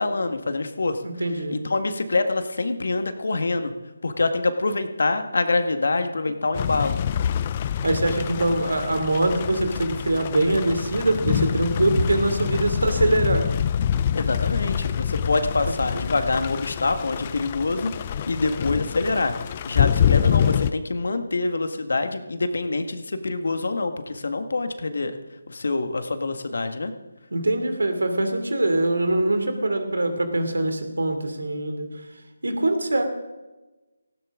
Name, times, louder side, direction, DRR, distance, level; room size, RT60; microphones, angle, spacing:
voice 1, 0.0-1.0 1.5-3.7 4.0-7.0 14.1-25.2 25.5-26.9, left 3 dB, 70° left, 8 dB, 1.7 m, -25 dB
voice 2, 1.0-1.6 7.8-13.5 15.9-16.0 27.3-31.9 32.4-33.0, right 2 dB, 85° right, 7 dB, 2.8 m, -23 dB
sound 1, 6.5-20.7, left 9 dB, 30° left, 0.5 m, -26 dB
18.0 x 15.0 x 3.8 m, 1.1 s
figure-of-eight pair, 160°, 0 cm